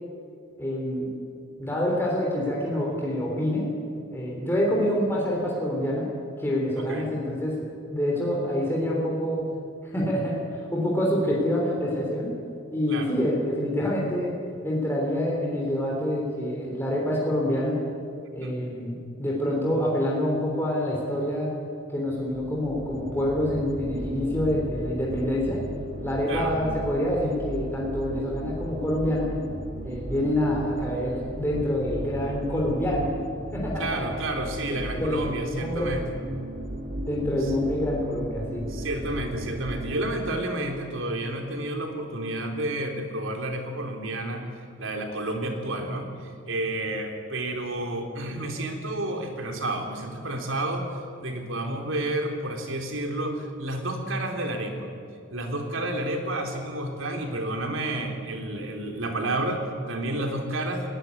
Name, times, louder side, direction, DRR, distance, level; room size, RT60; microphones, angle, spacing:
voice 1, 0.6-1.1 1.6-3.7 4.1-6.1 6.4-9.4 9.8-12.3 12.7-14.3 14.6-17.8 18.3-21.5 21.9-25.6 26.0-29.3 29.8-33.1 33.5-34.2 34.9-35.9 37.0-38.7, left 1 dB, 10° left, -3 dB, 3.5 m, -26 dB
sound 1, 22.1-40.1, right 1 dB, 45° right, 2.0 m, -36 dB
voice 2, 33.8-36.0 38.7-44.5 44.8-46.1 46.5-50.9 51.2-54.9 55.3-60.9, right 1 dB, 70° right, 3 dB, 3.4 m, -30 dB
20.5 x 18.0 x 9.6 m, 2.4 s
head